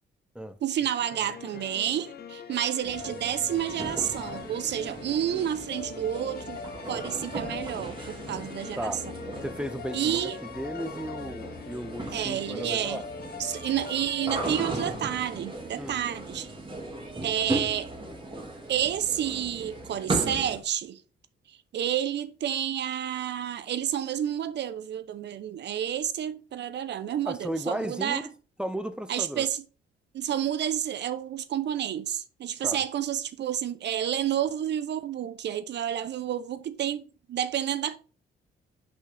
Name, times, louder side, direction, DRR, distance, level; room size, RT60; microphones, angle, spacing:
voice 1, 0.6-6.6 6.9-9.0 9.9-10.4 12.1-13.0 13.4-16.6 17.2-18.0 18.7-21.0 21.5-28.2 29.1-29.6 30.1-38.0, right 10 dB, 60° right, 0.7 m, -30 dB
sound 1, 1.0-15.3, left 6 dB, 50° left, 0.9 m, -42 dB
sound 2, 2.8-20.6, right 2 dB, 25° right, 2.1 m, -37 dB
voice 2, 9.4-13.0 15.8-16.0 27.3-28.3 28.6-29.5 32.6-32.8, equal, 5° right, 0.6 m, -35 dB
6.2 x 5.3 x 3.4 m
cardioid pair, 90°, 20 cm